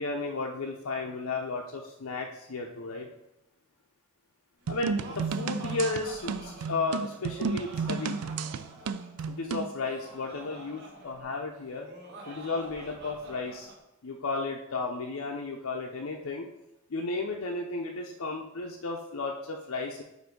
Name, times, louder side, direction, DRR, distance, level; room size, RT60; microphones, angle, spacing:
voice 1, 0.0-3.1 4.7-8.2 9.3-11.9 12.3-13.7 14.0-16.5 16.9-20.0, left 3 dB, 65° left, 0 dB, 0.5 m, -34 dB
Laughter, 4.6-13.8, right 2 dB, 55° right, 1.2 m, -47 dB
sound 1, 4.7-9.7, right 5 dB, 90° right, 0.4 m, -32 dB
7.8 x 2.6 x 5.2 m, 0.90 s
head